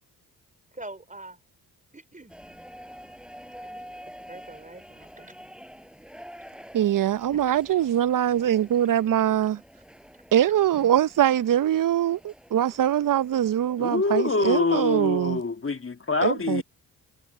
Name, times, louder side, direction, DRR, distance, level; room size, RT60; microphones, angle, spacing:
voice 1, 0.7-1.4 1.9-2.3 3.6-3.9 4.3-5.3 7.3-7.4, right 2 dB, 15° right, 5.3 m, -44 dB
sound 1, 2.3-15.0, equal, ahead, 6.3 m, -48 dB
voice 2, 6.7-9.6 10.3-15.4 16.2-16.6, right 11 dB, 45° right, 0.7 m, -23 dB
voice 3, 13.8-16.6, left 3 dB, 30° left, 2.1 m, -25 dB
hypercardioid pair, 45°, 44 cm